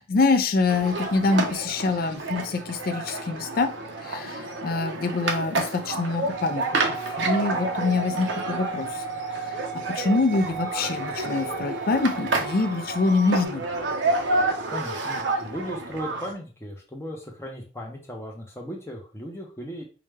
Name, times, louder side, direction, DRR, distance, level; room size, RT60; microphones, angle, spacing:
voice 1, 0.0-3.7 4.0-9.0 9.5-13.6, left 3 dB, 55° left, 8 dB, 0.4 m, -25 dB
sound 1, 0.7-16.3, right 2 dB, 80° right, 0.7 m, -30 dB
sound 2, 6.3-13.5, right 5 dB, 55° right, 0.8 m, -35 dB
voice 2, 14.7-19.8, equal, 15° left, 0 dB, 0.6 m, -37 dB
4.7 x 2.2 x 3.2 m, 0.36 s
head